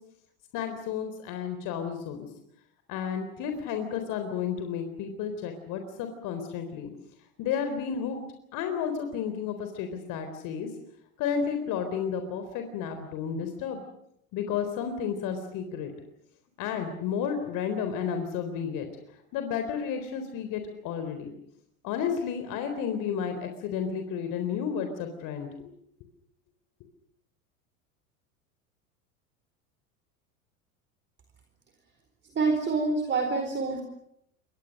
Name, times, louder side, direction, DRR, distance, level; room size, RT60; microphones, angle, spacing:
voice 1, 0.5-2.3 2.9-6.9 7.4-8.2 8.5-10.7 11.2-13.8 14.3-15.9 16.6-21.3 21.8-25.7, left 7 dB, 50° left, 7 dB, 3.9 m, -32 dB
voice 2, 32.3-33.8, right 4 dB, 25° right, 5 dB, 4.4 m, -26 dB
29.0 x 24.0 x 6.5 m, 0.76 s
hypercardioid pair, 85°, 42 cm